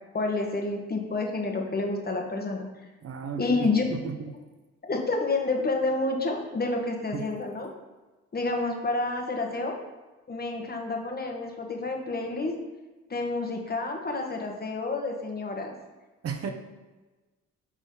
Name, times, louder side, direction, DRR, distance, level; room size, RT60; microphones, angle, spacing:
voice 1, 0.1-2.7 3.4-3.9 4.8-7.7 8.3-9.8 10.3-12.5 13.1-15.7, left 3 dB, 30° left, 2 dB, 1.4 m, -29 dB
voice 2, 3.0-4.3 7.1-7.2 16.2-16.5, right 6 dB, 50° right, 6 dB, 0.8 m, -34 dB
9.3 x 4.1 x 3.9 m, 1.2 s
cardioid pair, 90°, 30 cm